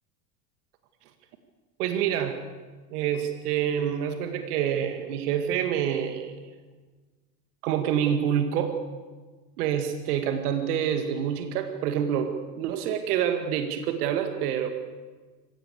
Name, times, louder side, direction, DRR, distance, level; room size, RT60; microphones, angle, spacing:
voice 1, 1.8-2.4 2.9-6.3 7.6-8.8 9.6-14.7, right 9 dB, 70° right, 7 dB, 2.0 m, -27 dB
25.5 x 16.5 x 8.4 m, 1.4 s
hypercardioid pair, 70°, 48 cm